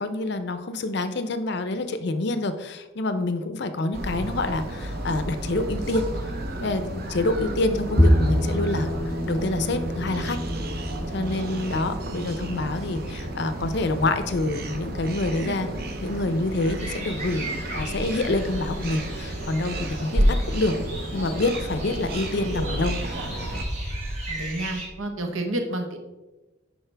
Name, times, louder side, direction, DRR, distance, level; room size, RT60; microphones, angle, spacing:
voice 1, 0.0-6.1 6.6-10.4 11.1-15.7 16.0-20.7 21.1-23.0, left 2 dB, 55° left, 9 dB, 0.5 m, -27 dB
sound 1, 3.9-23.6, right 1 dB, 50° right, 0.7 m, -31 dB
Bowed string instrument, 8.0-14.3, equal, 5° right, 0.5 m, -27 dB
sound 2, 16.8-24.9, right 1 dB, 35° right, 2.3 m, -36 dB
voice 2, 24.3-26.0, right 1 dB, 75° right, 4 dB, 1.1 m, -30 dB
10.0 x 4.3 x 3.4 m, 1.1 s
head